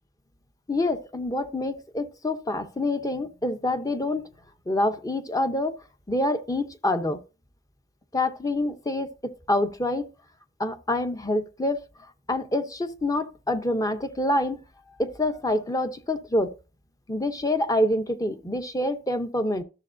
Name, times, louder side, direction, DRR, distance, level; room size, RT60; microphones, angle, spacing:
voice 1, 0.7-4.3 4.7-5.7 6.1-7.2 8.1-10.1 10.6-11.8 12.3-14.6 15.0-16.5 17.1-19.6, left 1 dB, 20° left, 0.7 m, -26 dB
12.5 x 6.8 x 2.6 m
head